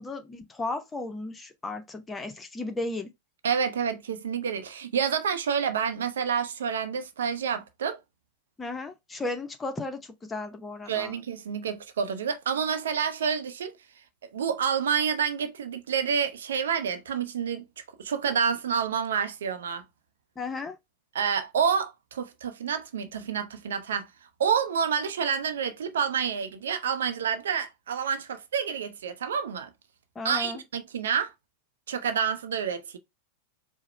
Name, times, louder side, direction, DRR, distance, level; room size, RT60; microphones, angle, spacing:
voice 1, 0.0-3.1 8.6-11.2 20.4-20.8 30.1-30.6, left 2 dB, 15° left, 0.7 m, -35 dB
voice 2, 3.4-8.0 10.9-13.7 14.3-17.6 18.0-19.8 21.1-24.1 24.4-29.7 30.2-31.3 31.9-33.0, right 7 dB, 65° right, 0.6 m, -28 dB
4.7 x 2.1 x 4.2 m
figure-of-eight pair, 90°, 0 cm